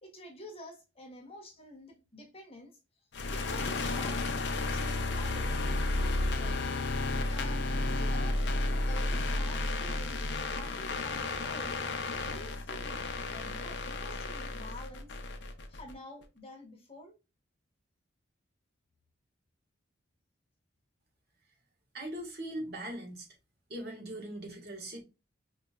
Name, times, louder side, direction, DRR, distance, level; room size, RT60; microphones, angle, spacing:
voice 1, 0.0-2.8 3.3-6.7 7.3-8.5 8.8-10.2 10.5-11.8 12.2-15.2 15.7-17.2, left 1 dB, 30° left, 1.1 m, -49 dB
sound 1, 3.1-15.9, left 2 dB, 65° left, 0.6 m, -32 dB
voice 2, 21.9-23.3 23.7-25.0, right 1 dB, 55° right, 1.5 m, -40 dB
5.3 x 2.9 x 2.4 m
head